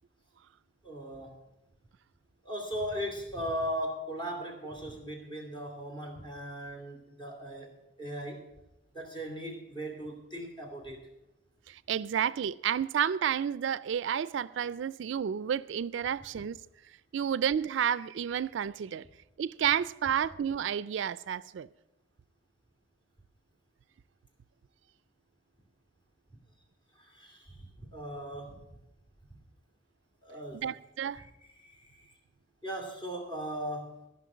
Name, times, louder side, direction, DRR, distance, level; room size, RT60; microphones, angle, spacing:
voice 1, 0.8-1.4 2.4-8.4 8.9-11.1 27.0-28.7 30.2-30.7 31.2-31.3 31.5-32.1 32.6-34.1, equal, 25° left, 2.6 m, -38 dB
voice 2, 11.7-16.6 17.1-19.1 19.4-21.7 30.5-31.2, right 8 dB, 70° right, 0.3 m, -31 dB
14.5 x 5.7 x 8.5 m
head